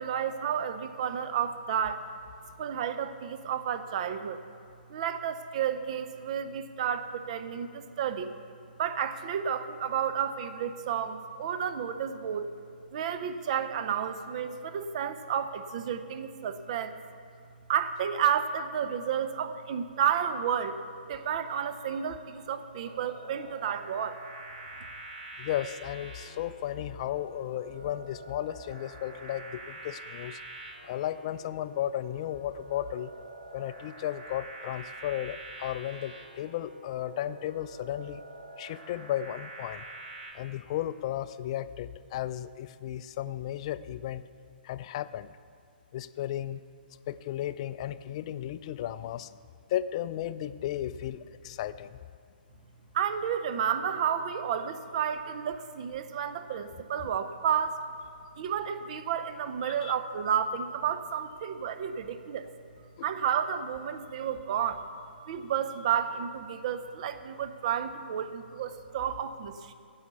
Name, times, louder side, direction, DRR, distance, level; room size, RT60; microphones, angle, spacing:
voice 1, 0.0-2.0 2.6-4.4 4.9-8.3 8.8-12.5 12.9-17.0 17.7-20.8 21.1-24.2 52.9-57.8 58.4-62.5 63.0-64.9 65.3-69.7, right 8 dB, 40° right, 10 dB, 0.6 m, -31 dB
sound 1, 22.8-40.3, right 2 dB, 60° right, 2.1 m, -46 dB
voice 2, 25.4-30.4 30.8-33.1 33.5-38.2 38.6-39.8 40.3-44.2 44.6-45.3 45.9-46.6 47.1-49.3 49.7-52.0 58.3-58.4 59.6-59.9, left 12 dB, 35° left, 14 dB, 0.4 m, -34 dB
15.0 x 5.6 x 8.1 m, 2.3 s
figure-of-eight pair, 125°, 6 cm